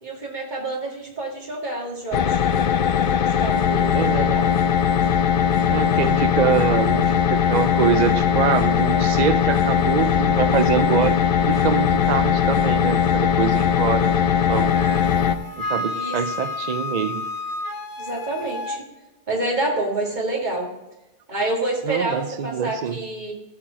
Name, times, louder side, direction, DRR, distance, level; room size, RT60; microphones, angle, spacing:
voice 1, 0.0-2.7 3.4-4.5 13.5-14.1 15.9-16.2 18.0-18.8 19.3-20.7 21.3-23.3, right 2 dB, 40° right, 1 dB, 2.1 m, -28 dB
sound 1, 2.1-15.4, left 8 dB, 60° left, 0.7 m, -20 dB
voice 2, 3.9-4.4 5.7-14.7 15.6-17.2 21.9-23.0, right 8 dB, 60° right, 11 dB, 0.5 m, -24 dB
Wind instrument woodwind instrument, 14.7-18.8, left 2 dB, 85° left, 1.3 m, -31 dB
13.0 x 4.3 x 6.2 m, 1.0 s
omnidirectional pair, 1.2 m